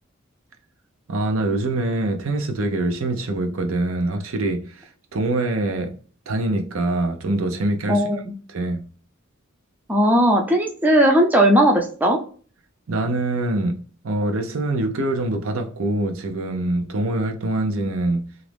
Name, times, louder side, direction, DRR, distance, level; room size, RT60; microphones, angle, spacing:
voice 1, 1.1-5.9 6.3-8.1 8.5-8.8 12.9-13.8 14.0-18.2, right 2 dB, 75° right, 0.6 m, -24 dB
voice 2, 7.9-8.3 9.9-12.2, right 1 dB, 10° right, 0.4 m, -17 dB
3.0 x 2.5 x 3.3 m
head